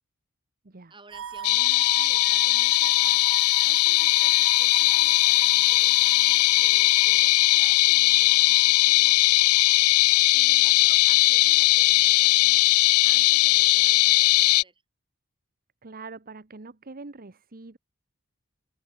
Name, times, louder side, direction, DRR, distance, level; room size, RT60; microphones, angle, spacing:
voice 1, 0.9-3.2 3.6-9.2 10.3-12.7 13.0-14.8, right 3 dB, 25° right, 6.5 m, -51 dB
sound 1, 1.1-10.2, right 8 dB, 65° right, 0.6 m, -40 dB
sound 2, 1.4-14.6, left 20 dB, 70° left, 0.3 m, -19 dB
voice 2, 15.8-17.8, right 3 dB, 45° right, 1.1 m, -43 dB
head